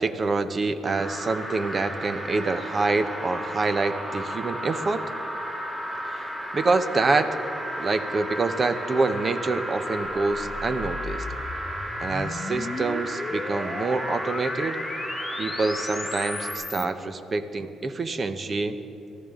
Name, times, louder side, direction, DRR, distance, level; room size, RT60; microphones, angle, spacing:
voice 1, 0.0-5.0 6.1-6.3 6.5-7.4 7.8-11.2 12.0-14.8 15.4-18.8, right 3 dB, 40° right, 10 dB, 0.9 m, -26 dB
sound 1, 1.0-16.5, equal, 20° right, 4.4 m, -34 dB
sound 2, 10.2-16.9, left 3 dB, 30° left, 1.0 m, -36 dB
23.5 x 15.0 x 3.8 m, 3.0 s
cardioid pair, 90°, 0 cm